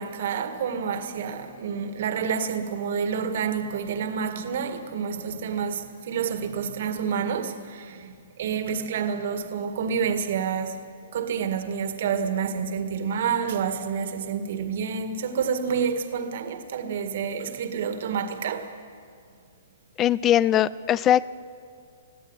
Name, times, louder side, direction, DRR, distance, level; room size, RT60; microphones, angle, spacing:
voice 1, 0.0-10.8 11.1-18.7, right 6 dB, 60° right, 1.9 m, -28 dB
voice 2, 20.0-21.3, left 11 dB, 20° left, 0.4 m, -20 dB
21.0 x 14.5 x 9.8 m
hypercardioid pair, 150°, 0 cm